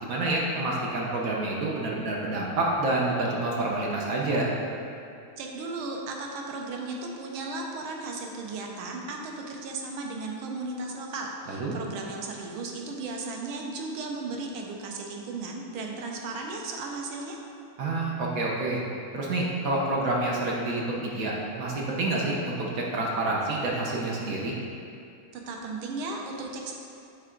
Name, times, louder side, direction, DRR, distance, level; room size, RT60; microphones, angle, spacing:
voice 1, 0.0-4.5 11.5-11.7 17.8-18.8 19.1-24.5, right 2 dB, 55° right, -3 dB, 1.0 m, -28 dB
voice 2, 5.4-17.4 25.3-26.7, right 3 dB, 85° right, 1 dB, 1.6 m, -35 dB
9.1 x 3.4 x 3.7 m, 2.5 s
omnidirectional pair, 2.2 m